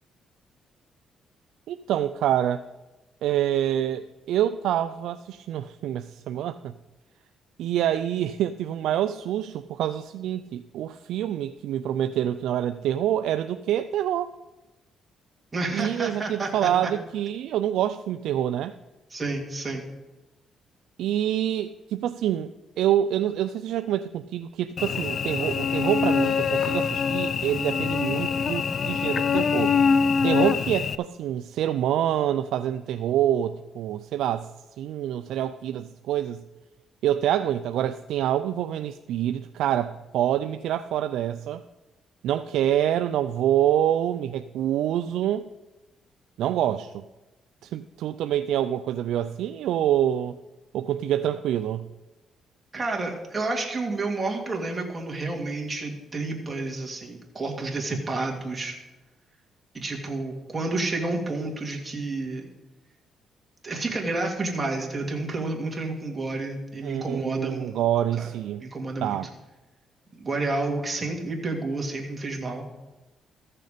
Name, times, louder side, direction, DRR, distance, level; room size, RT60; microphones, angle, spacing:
voice 1, 1.7-2.6 3.2-6.7 7.6-14.3 15.7-18.7 21.0-29.7 30.2-34.5 34.8-36.4 37.0-41.6 42.2-45.5 46.4-47.0 47.6-50.4 50.7-51.8 66.8-68.6 69.0-69.3, right 11 dB, 85° right, 10 dB, 0.3 m, -26 dB
voice 2, 15.5-16.9 19.1-19.8 52.7-58.8 59.7-62.5 63.6-67.7 68.2-68.3 68.6-69.2 70.1-72.7, right 2 dB, 25° right, -1 dB, 2.2 m, -30 dB
Cricket / Buzz, 24.8-31.0, left 6 dB, 55° left, 0.4 m, -24 dB
14.0 x 6.6 x 5.1 m, 1.1 s
cardioid pair, 90°, 0 cm